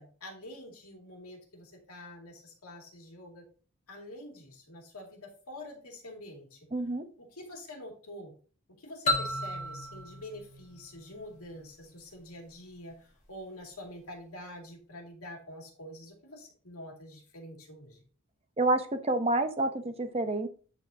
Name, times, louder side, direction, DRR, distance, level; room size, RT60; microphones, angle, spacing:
voice 1, 0.0-3.4 3.9-6.6 7.2-8.3 8.8-18.0, left 1 dB, 85° left, 1 dB, 2.3 m, -46 dB
voice 2, 6.7-7.0 18.6-20.5, right 2 dB, 25° right, 8 dB, 0.7 m, -28 dB
sound 1, 9.1-11.8, left 2 dB, 35° left, 1.3 m, -34 dB
10.0 x 4.2 x 2.7 m, 0.40 s
head